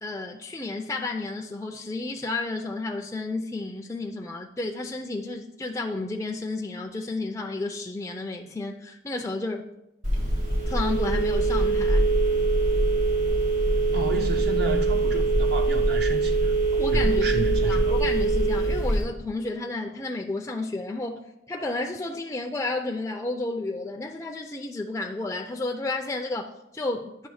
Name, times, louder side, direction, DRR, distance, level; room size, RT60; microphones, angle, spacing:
voice 1, 0.0-9.7 10.7-12.1 16.8-21.2 21.5-27.3, left 2 dB, 15° left, 0.4 m, -31 dB
Telephone, 10.0-19.0, right 3 dB, 75° right, 3.2 m, -23 dB
voice 2, 13.9-18.0, right 2 dB, 55° right, 0.6 m, -32 dB
10.0 x 3.4 x 6.3 m
head